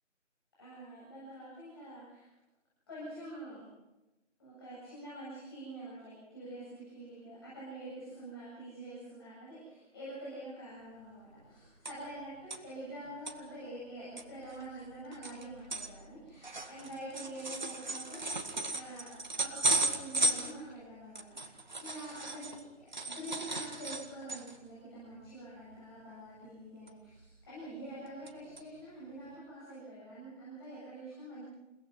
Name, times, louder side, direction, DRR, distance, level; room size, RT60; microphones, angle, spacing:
voice 1, 0.6-2.3 2.9-3.6 4.4-19.1 19.4-31.4, right 1 dB, 20° left, -9 dB, 7.8 m, -46 dB
sound 1, 10.9-11.0 11.2-12.2 12.5-12.6 13.0-13.3 13.8-13.9 14.2-22.6 22.9-24.7 25.1-25.3 25.6-25.8 26.9-27.4 27.8-28.3 28.6-28.7 29.3-29.4, right 2 dB, 35° right, 1.9 m, -36 dB
29.0 x 18.0 x 6.0 m, 1.0 s
figure-of-eight pair, 170°, 38 cm